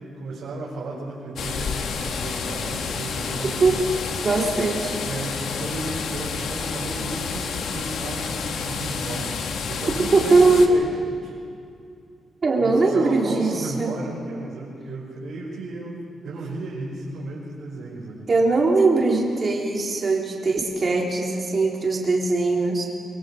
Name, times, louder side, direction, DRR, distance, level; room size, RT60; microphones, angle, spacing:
voice 1, 0.2-3.8 5.0-9.4 9.7-11.3 12.6-18.3, right 2 dB, 80° right, -7 dB, 5.2 m, -34 dB
sound 1, 1.4-10.7, left 5 dB, 80° left, 1.5 m, -29 dB
voice 2, 4.2-4.9 10.1-10.7 12.4-13.9 18.3-22.9, right 3 dB, 35° right, -1 dB, 3.2 m, -20 dB
24.0 x 22.0 x 5.0 m, 2.4 s
wide cardioid pair, 145°, 0 cm